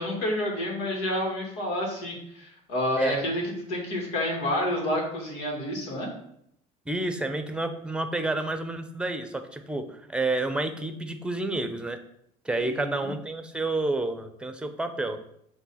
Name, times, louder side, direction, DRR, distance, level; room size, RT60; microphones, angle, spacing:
voice 1, 0.0-3.4 3.7-6.1 12.6-13.1, left 1 dB, 80° left, 0 dB, 2.5 m, -29 dB
voice 2, 6.9-12.0 12.4-15.2, right 2 dB, 5° right, 8 dB, 0.8 m, -29 dB
7.2 x 3.4 x 5.6 m, 0.73 s
supercardioid pair, 115°, 17 cm